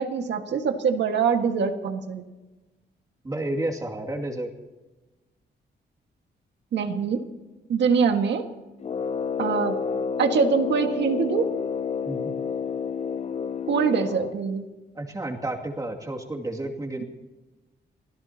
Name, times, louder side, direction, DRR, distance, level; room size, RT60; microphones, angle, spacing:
voice 1, 0.0-2.2 6.7-7.3 7.7-8.5 9.4-9.8 10.2-11.5 13.7-14.6, right 6 dB, 80° right, 6 dB, 1.7 m, -24 dB
voice 2, 3.2-4.5 12.0-12.3 14.9-17.0, right 1 dB, 20° right, 0 dB, 2.4 m, -31 dB
Brass instrument, 8.8-14.4, left 6 dB, 35° left, 0.5 m, -29 dB
28.5 x 17.5 x 2.9 m, 1.2 s
wide cardioid pair, 140°, 18 cm